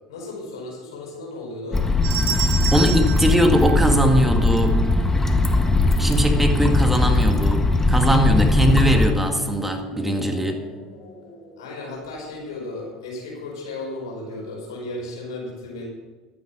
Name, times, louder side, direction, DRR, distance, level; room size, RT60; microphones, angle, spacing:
voice 1, 0.1-1.9 11.6-15.9, left 2 dB, 85° left, -1 dB, 5.1 m, -34 dB
sound 1, 1.7-9.1, left 2 dB, 15° left, 1.5 m, -20 dB
sound 2, 2.0-4.4, right 8 dB, 70° right, 4.1 m, -30 dB
voice 2, 2.4-4.9 6.0-10.6, equal, 10° right, 4 dB, 1.9 m, -21 dB
sound 3, 3.3-12.4, left 2 dB, 60° left, 4.3 m, -34 dB
11.5 x 9.8 x 6.1 m, 1.3 s
hypercardioid pair, 75°, 2 cm